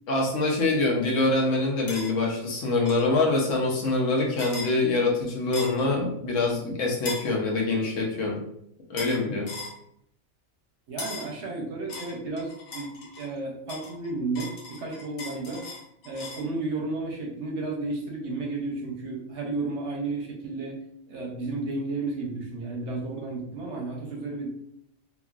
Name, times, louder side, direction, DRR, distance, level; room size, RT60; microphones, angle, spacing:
voice 1, 0.1-8.4 8.9-9.5, left 2 dB, 70° left, -1 dB, 1.0 m, -25 dB
sound 1, 1.9-2.1 2.9-3.1 4.4-4.7 5.5-5.9 7.1-7.3 9.0-9.2 9.5-9.8 11.0-11.3 11.9-13.3 13.7-16.5, left 3 dB, 85° left, 1.2 m, -38 dB
voice 2, 10.9-15.6 16.0-20.8 21.1-24.5, right 3 dB, 65° right, -1 dB, 0.9 m, -32 dB
2.9 x 2.5 x 2.3 m, 0.74 s
omnidirectional pair, 1.4 m